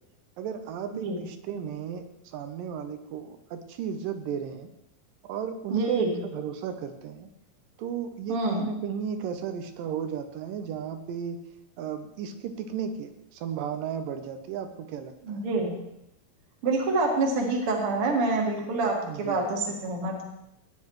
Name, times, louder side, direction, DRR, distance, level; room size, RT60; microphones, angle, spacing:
voice 1, 0.4-4.7 5.2-7.3 7.8-11.4 11.8-15.5 19.0-19.4, right 7 dB, 75° right, 8 dB, 2.2 m, -34 dB
voice 2, 5.7-6.2 8.3-8.7 15.2-15.8 16.6-20.3, right 3 dB, 45° right, 0 dB, 2.3 m, -27 dB
18.0 x 9.6 x 3.1 m, 0.84 s
omnidirectional pair, 4.5 m